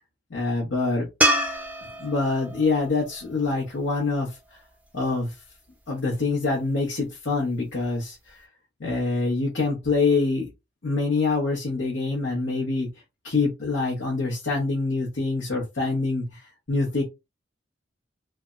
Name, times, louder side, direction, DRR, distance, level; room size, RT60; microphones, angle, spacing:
voice 1, 0.3-1.1 2.0-4.6 4.9-5.4 5.9-8.5 8.8-10.5 10.8-12.9 13.2-17.0, left 3 dB, 90° left, 0.9 m, -25 dB
sound 1, 1.2-4.4 7.7-7.8, right 1 dB, 10° right, 0.5 m, -27 dB
3.2 x 2.0 x 2.4 m
head